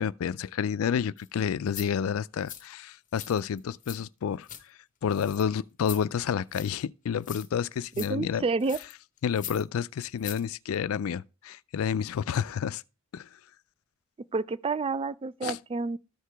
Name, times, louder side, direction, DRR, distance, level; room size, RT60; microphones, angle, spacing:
voice 1, 0.0-4.5 5.0-8.4 9.2-12.8 13.1-13.3 15.4-15.6, left 7 dB, 80° left, 0.4 m, -30 dB
sound 1, 1.2-1.3 1.7-1.9 2.5-2.7 3.1-4.0 4.2-4.6 5.1-5.4 5.8-6.0 6.5-6.8 7.2-7.6 7.9-8.1 8.6-8.9 9.3-9.6 10.0-10.4 10.7-10.8, left 10 dB, 40° left, 0.9 m, -41 dB
voice 2, 8.0-8.8 14.3-16.0, right 4 dB, 25° right, 0.3 m, -29 dB
13.5 x 4.8 x 3.4 m
head